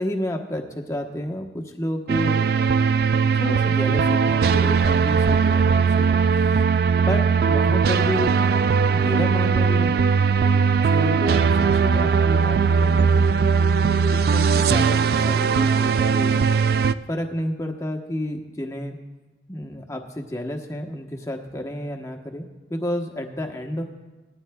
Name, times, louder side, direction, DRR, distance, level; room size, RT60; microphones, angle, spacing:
voice 1, 0.0-2.5 3.3-6.1 6.9-8.3 8.9-10.0 10.4-11.4 11.7-13.3 14.1-16.5 17.1-19.0 19.5-23.8, left 1 dB, 15° left, 3 dB, 1.0 m, -30 dB
sound 1, 2.1-16.9, right 5 dB, 55° right, 0.3 m, -19 dB
18.5 x 13.0 x 2.3 m, 1.2 s
head